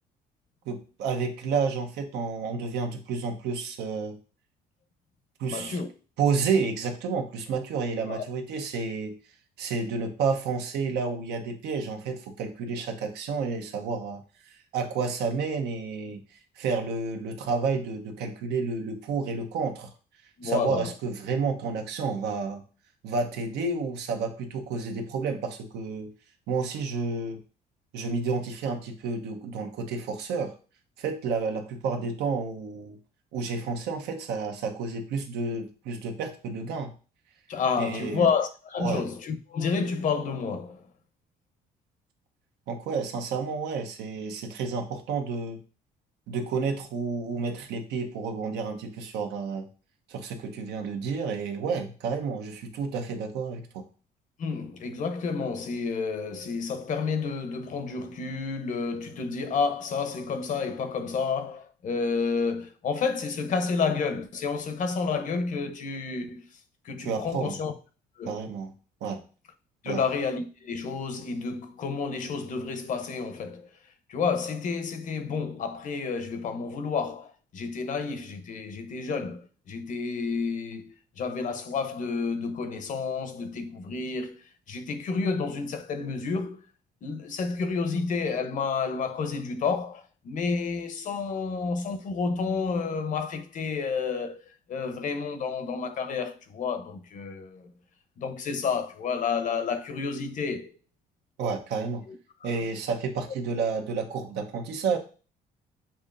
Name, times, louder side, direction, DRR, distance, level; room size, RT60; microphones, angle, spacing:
voice 1, 0.7-4.2 5.4-5.8 6.2-9.2 9.6-16.2 16.6-19.9 20.4-22.6 23.0-26.1 26.5-27.4 27.9-30.6 31.0-33.0 33.3-36.9 37.8-38.3 38.8-39.0 42.7-45.6 46.3-49.7 50.1-53.8 67.0-67.6 68.3-68.7 69.0-69.2 69.9-70.0 101.4-102.0 102.4-105.0, right 4 dB, 80° right, 0.9 m, -30 dB
voice 2, 5.5-5.9 8.1-8.2 20.4-20.9 37.5-40.9 54.4-66.5 66.8-67.7 68.2-68.3 69.8-73.7 74.1-86.6 87.0-97.7 98.2-100.7 102.1-102.2, left 5 dB, 50° left, 0.7 m, -30 dB
7.0 x 2.7 x 2.5 m
cardioid pair, 110°, 17 cm